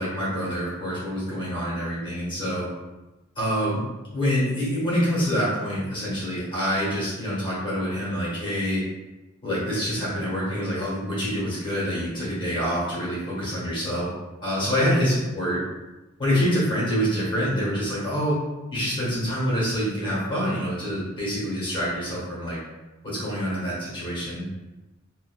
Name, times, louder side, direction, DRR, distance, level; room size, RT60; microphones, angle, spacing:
voice 1, 0.0-2.7 3.4-3.8 4.1-8.8 9.4-14.1 14.4-15.6 16.2-18.4 18.7-22.6 23.0-24.5, equal, 25° left, -7 dB, 1.0 m, -26 dB
2.5 x 2.2 x 2.4 m, 1.1 s
head